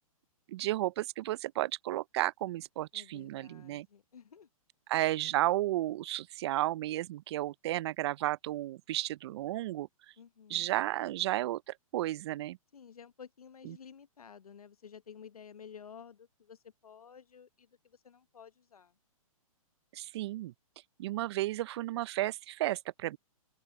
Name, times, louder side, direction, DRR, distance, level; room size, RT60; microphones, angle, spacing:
voice 1, 0.5-3.9 4.9-9.9 10.5-12.6 13.6-13.8 19.9-20.5 21.0-23.2, right 15 dB, 50° right, 0.7 m, -33 dB
voice 2, 2.9-4.5 10.2-10.7 12.7-18.9, left 7 dB, 85° left, 1.1 m, -53 dB
hypercardioid pair, 135°, 18 cm